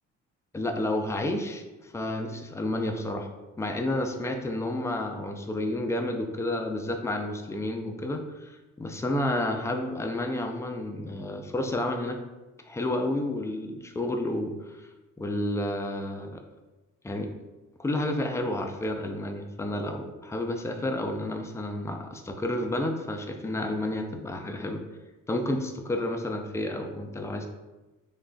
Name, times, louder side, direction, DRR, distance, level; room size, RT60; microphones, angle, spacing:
voice 1, 0.5-3.3 3.6-12.2 12.6-14.9 15.2-16.4 17.0-17.3 17.8-24.8 25.3-27.5, left 1 dB, 10° left, 4 dB, 0.4 m, -30 dB
3.2 x 2.4 x 3.7 m, 1.1 s
cardioid pair, 90°, 30 cm